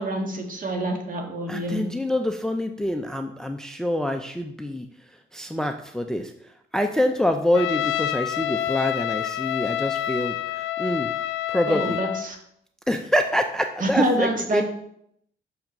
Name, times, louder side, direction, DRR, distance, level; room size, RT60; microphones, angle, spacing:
voice 1, 0.0-1.9 11.7-12.4 13.8-14.6, right 1 dB, 40° right, 3 dB, 1.8 m, -26 dB
voice 2, 1.5-4.9 5.3-11.1 11.5-12.0 12.9-14.6, left 1 dB, 5° left, 6 dB, 0.5 m, -26 dB
Trumpet, 7.5-12.3, left 12 dB, 75° left, 0.5 m, -27 dB
6.4 x 5.8 x 5.2 m, 0.72 s
cardioid pair, 90°, 20 cm